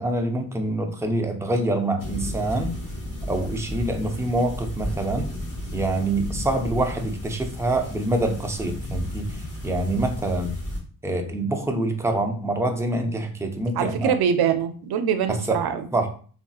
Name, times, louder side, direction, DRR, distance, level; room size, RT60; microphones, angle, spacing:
voice 1, 0.0-2.7 3.3-5.3 5.7-10.5 11.0-14.1 15.3-15.6 15.9-16.1, right 2 dB, 10° right, 4 dB, 0.3 m, -25 dB
sound 1, 2.0-10.8, equal, 55° left, 1.2 m, -33 dB
voice 2, 13.7-15.9, right 8 dB, 75° right, 8 dB, 0.5 m, -23 dB
3.0 x 2.7 x 2.3 m, 0.42 s
cardioid pair, 120°, 38 cm